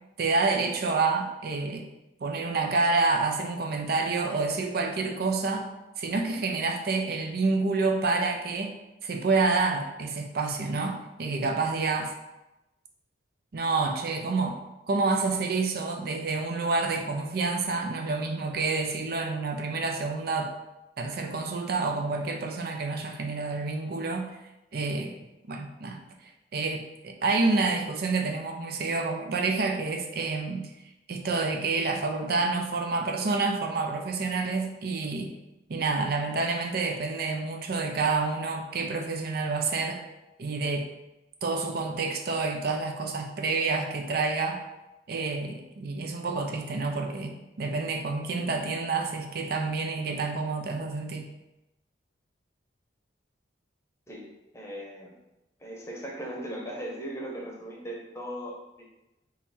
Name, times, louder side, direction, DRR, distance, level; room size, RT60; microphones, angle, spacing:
voice 1, 0.2-1.9 2.2-5.7 6.0-8.8 9.0-12.1 13.5-14.6 14.9-20.5 21.0-24.3 24.7-25.1 25.5-26.0 26.5-30.7 31.1-35.3 35.7-40.0 40.4-40.8 41.4-44.6 45.1-51.3, right 3 dB, 55° right, 3 dB, 0.5 m, -28 dB
voice 2, 54.1-55.1 55.6-58.8, right 1 dB, 15° left, -2 dB, 0.8 m, -38 dB
3.9 x 3.0 x 4.2 m, 0.96 s
head